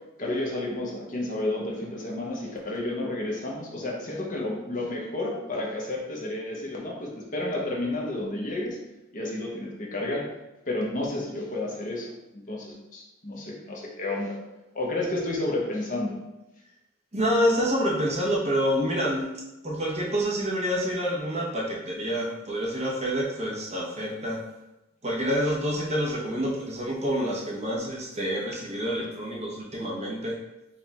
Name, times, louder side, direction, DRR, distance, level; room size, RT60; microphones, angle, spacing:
voice 1, 0.2-8.8 9.1-10.3 10.7-14.4 14.7-16.2, left 2 dB, 35° left, -2 dB, 0.7 m, -31 dB
voice 2, 17.1-19.3 19.6-24.4 25.0-30.4, equal, 30° right, -4 dB, 0.8 m, -27 dB
4.3 x 2.4 x 4.0 m, 0.98 s
head